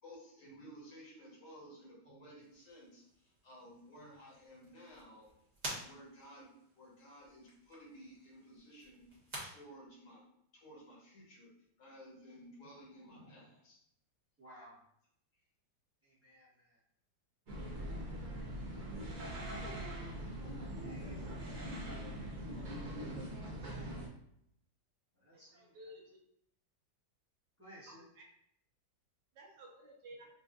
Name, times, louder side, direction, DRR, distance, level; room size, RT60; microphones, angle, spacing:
voice 1, 0.0-5.3 5.6-9.1 9.4-10.2 10.5-11.5 11.8-13.8, equal, 70° left, -4 dB, 1.8 m, -55 dB
sound 1, 2.4-9.4, right 1 dB, 30° right, 0.9 m, -50 dB
voice 2, 14.4-14.8 16.0-16.8 20.8-22.4 23.3-23.9 25.1-25.8 27.6-28.0 29.7-29.9, right 1 dB, 10° right, -7 dB, 1.0 m, -59 dB
sound 2, 17.5-24.1, right 1 dB, 50° right, 0.5 m, -42 dB
voice 3, 25.3-26.2 27.9-28.2 29.3-30.3, right 1 dB, 75° right, -1 dB, 1.3 m, -54 dB
4.9 x 2.5 x 2.4 m, 0.73 s
omnidirectional pair, 1.9 m